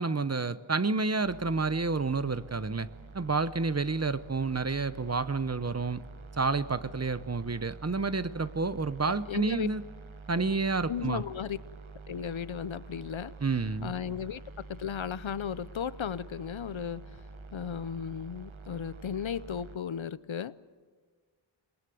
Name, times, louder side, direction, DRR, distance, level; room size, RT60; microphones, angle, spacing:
voice 1, 0.0-2.9 3.1-6.0 6.4-9.8 10.3-11.2 13.4-13.9, right 4 dB, 30° right, 14 dB, 0.8 m, -29 dB
sound 1, 1.2-19.8, right 4 dB, 85° right, 1.4 m, -48 dB
voice 2, 9.0-9.7 10.3-10.5 10.9-11.6 12.1-13.3 13.8-17.0 17.5-20.7, left 8 dB, 75° left, 17 dB, 0.8 m, -35 dB
27.0 x 21.5 x 7.8 m, 1.5 s
wide cardioid pair, 75°, 47 cm